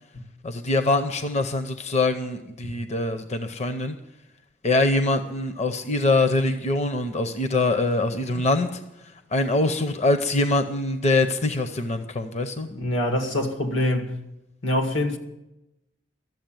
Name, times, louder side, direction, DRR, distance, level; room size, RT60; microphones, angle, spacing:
voice 1, 0.4-4.0 4.6-8.8 9.3-12.7, left 2 dB, 35° left, 0.7 m, -23 dB
voice 2, 12.7-14.1 14.6-15.2, left 1 dB, 85° left, 2.0 m, -25 dB
13.5 x 7.5 x 9.0 m
head